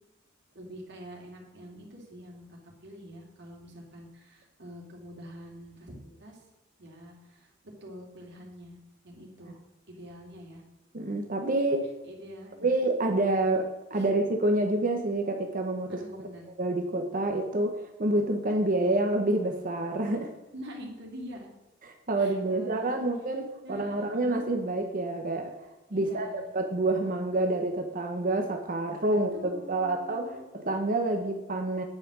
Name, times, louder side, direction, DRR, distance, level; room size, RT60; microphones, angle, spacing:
voice 1, 0.5-6.5 6.8-7.5 7.8-8.8 9.0-9.6 9.9-10.6 11.6-11.7 12.0-12.7 14.0-14.1 15.9-16.5 20.5-21.5 22.2-23.1 23.6-24.1 25.9-26.5 29.3-30.5, equal, 60° right, 0 dB, 2.8 m, -45 dB
voice 2, 10.9-11.9 12.6-16.0 16.6-20.3 21.8-25.5 25.9-26.3 26.5-30.3 30.5-31.8, right 2 dB, 45° right, 4 dB, 1.0 m, -28 dB
9.7 x 5.8 x 6.3 m, 1.0 s
head